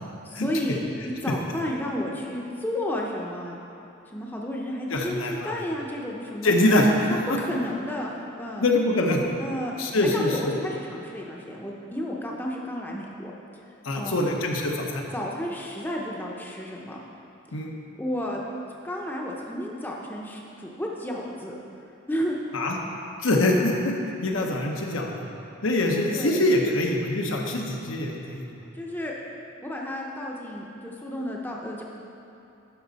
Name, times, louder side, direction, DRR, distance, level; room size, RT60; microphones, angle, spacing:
voice 1, 0.3-3.6 4.1-6.6 7.1-8.6 9.4-9.7 10.0-13.3 13.9-14.2 15.1-17.0 18.0-18.4 18.8-21.5 22.1-22.4 26.1-26.4 28.7-29.1 29.6-31.8, left 1 dB, 10° left, -2 dB, 0.6 m, -32 dB
voice 2, 4.9-5.5 6.4-6.9 7.3-7.4 8.6-9.2 9.8-10.5 13.8-15.0 17.5-17.7 22.5-22.8 23.2-25.2 25.6-28.5, left 1 dB, 80° left, 1 dB, 0.9 m, -24 dB
11.5 x 5.3 x 4.0 m, 2.8 s
head